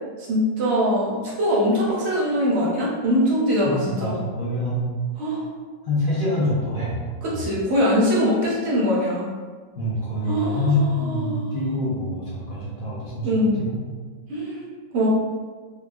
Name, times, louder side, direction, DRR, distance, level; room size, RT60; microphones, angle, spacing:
voice 1, 0.2-4.2 5.2-5.5 7.2-9.3 10.2-11.5 13.2-13.6 14.3-14.6 14.9-15.1, equal, 60° right, -6 dB, 0.7 m, -22 dB
voice 2, 3.6-4.9 5.8-7.0 7.3-7.4 9.7-13.8, left 1 dB, 60° left, -9 dB, 0.5 m, -26 dB
3.5 x 2.8 x 2.3 m, 1.5 s
omnidirectional pair, 2.0 m